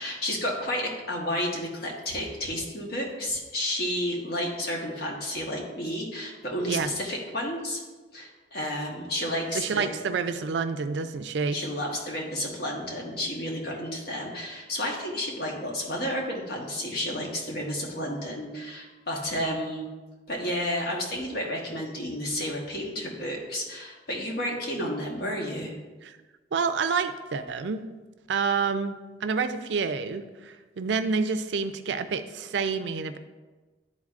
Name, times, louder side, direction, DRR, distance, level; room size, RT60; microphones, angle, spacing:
voice 1, 0.0-7.8 8.1-9.9 11.5-19.8 20.3-25.8, left 1 dB, 60° left, -1 dB, 1.3 m, -31 dB
voice 2, 9.5-11.6 26.0-26.1 26.5-27.8 28.3-28.9 29.2-33.2, right 5 dB, 90° right, 10 dB, 0.4 m, -28 dB
11.0 x 4.0 x 2.5 m, 1.3 s
head